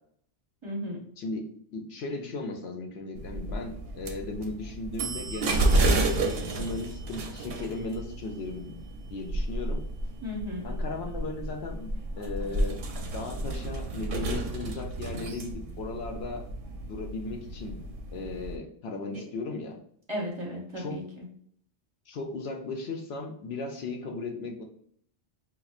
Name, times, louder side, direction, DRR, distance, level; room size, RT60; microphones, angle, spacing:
voice 1, 0.6-1.0 10.2-10.7 19.1-19.2 20.1-21.3, equal, 30° right, -3 dB, 0.8 m, -35 dB
voice 2, 1.7-5.9 6.3-8.8 9.1-9.8 10.6-12.8 13.1-16.4 16.9-17.8 18.1-19.8 20.8-21.0 22.1-24.6, left 3 dB, 70° left, 3 dB, 0.9 m, -36 dB
sound 1, 3.2-18.6, right 2 dB, 65° right, 0.8 m, -31 dB
5.6 x 2.1 x 2.4 m, 0.64 s
omnidirectional pair, 1.2 m